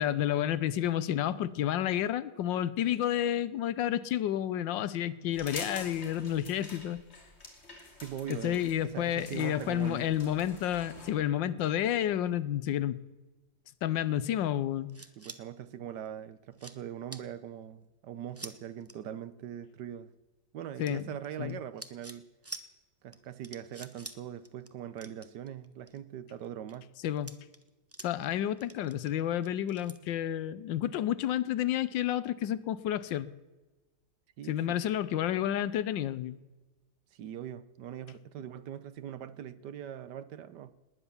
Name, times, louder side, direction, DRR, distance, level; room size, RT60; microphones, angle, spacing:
voice 1, 0.0-7.0 8.3-13.0 13.8-14.9 20.8-21.1 21.4-21.6 27.0-27.3 28.0-33.3 34.5-36.4, left 11 dB, 80° left, 17 dB, 1.4 m, -30 dB
sound 1, 5.3-11.1, left 2 dB, 35° left, 2.9 m, -47 dB
voice 2, 8.0-10.1 15.2-20.1 20.5-22.2 23.0-26.9 34.4-34.8 37.1-40.7, right 10 dB, 70° right, 15 dB, 1.3 m, -41 dB
sound 2, 14.9-15.4 16.1-16.2 16.5-16.8 17.1-17.2 18.3-18.5 18.8-18.9 20.8-21.5 21.8-22.2 22.4-22.6 23.1-23.2 23.4-24.2 24.4-24.7 25.0-26.0 26.4-26.8 27.2-28.3 28.6-30.0, right 2 dB, 15° right, 0.4 m, -46 dB
19.5 x 10.0 x 7.0 m, 1.2 s
omnidirectional pair, 2.0 m